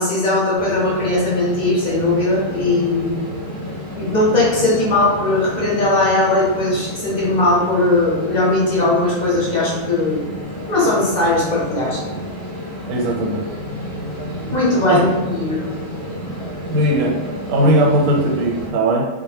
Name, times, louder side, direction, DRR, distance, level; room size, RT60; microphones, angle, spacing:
voice 1, 0.0-3.1 3.9-10.2 10.7-12.0 14.5-15.6, left 2 dB, 50° left, -6 dB, 0.6 m, -18 dB
sound 1, 0.6-18.7, equal, 50° right, 0.4 m, -31 dB
voice 2, 12.9-13.5 14.8-15.0 16.7-17.2 17.5-19.1, right 1 dB, 85° right, 0 dB, 1.0 m, -18 dB
2.1 x 2.1 x 3.1 m, 1.2 s
omnidirectional pair, 1.4 m